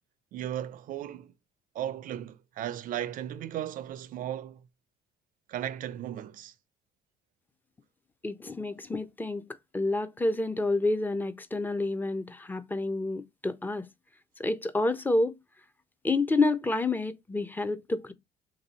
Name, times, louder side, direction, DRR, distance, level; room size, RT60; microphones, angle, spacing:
voice 1, 0.3-1.3 1.7-4.6 5.5-6.5, right 11 dB, 55° right, 0.4 m, -36 dB
voice 2, 8.2-9.4 9.7-13.9 14.4-15.3 16.0-18.1, left 2 dB, 10° left, 0.4 m, -28 dB
3.0 x 2.6 x 4.0 m
cardioid pair, 110°, 17 cm